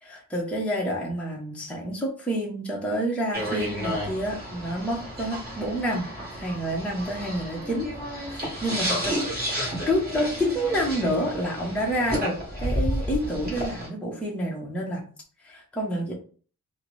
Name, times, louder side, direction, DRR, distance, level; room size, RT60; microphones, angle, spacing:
voice 1, 0.0-6.1 6.4-9.2 9.9-15.0 15.4-16.1, equal, 5° left, -2 dB, 0.6 m, -28 dB
sound 1, 3.3-13.9, equal, 30° right, 1.6 m, -31 dB
3.9 x 2.0 x 3.0 m, 0.41 s
wide cardioid pair, 155°, 34 cm